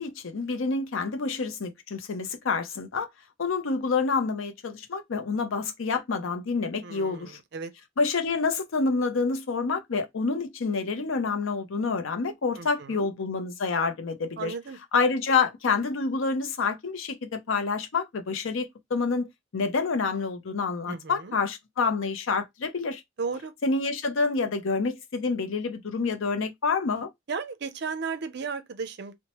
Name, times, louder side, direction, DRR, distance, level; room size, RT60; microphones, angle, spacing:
voice 1, 0.0-3.1 3.4-7.4 8.0-14.5 14.9-23.0 23.6-27.1, left 4 dB, 75° left, 0.5 m, -28 dB
voice 2, 6.8-7.7 12.6-13.1 14.4-14.8 20.9-21.4 23.2-23.5 27.3-29.2, right 5 dB, 55° right, 0.5 m, -35 dB
2.9 x 2.1 x 2.9 m
head